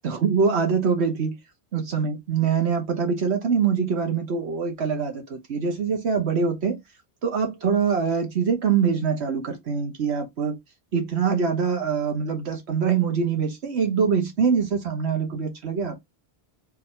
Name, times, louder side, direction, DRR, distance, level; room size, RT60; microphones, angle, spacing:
voice 1, 0.0-1.3 1.7-6.8 7.2-10.6 10.9-16.0, right 6 dB, 85° right, 1.3 m, -24 dB
4.5 x 3.1 x 3.6 m
omnidirectional pair, 1.1 m